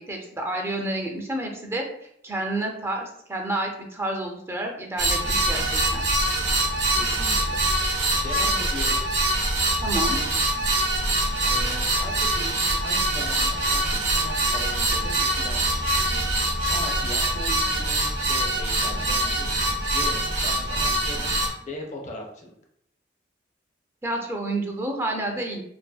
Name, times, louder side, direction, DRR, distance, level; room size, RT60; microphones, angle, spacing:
voice 1, 0.0-1.8 2.2-5.6 5.9-6.0 9.8-10.2 24.0-25.6, right 1 dB, 15° right, 1 dB, 0.4 m, -29 dB
sound 1, 5.0-21.5, right 1 dB, 70° right, 0.6 m, -24 dB
voice 2, 7.0-7.6 8.2-9.0 11.4-16.1 16.6-19.5 19.9-21.3 21.6-22.5, left 1 dB, 40° left, 0 dB, 0.5 m, -38 dB
2.6 x 2.5 x 2.2 m, 0.73 s
head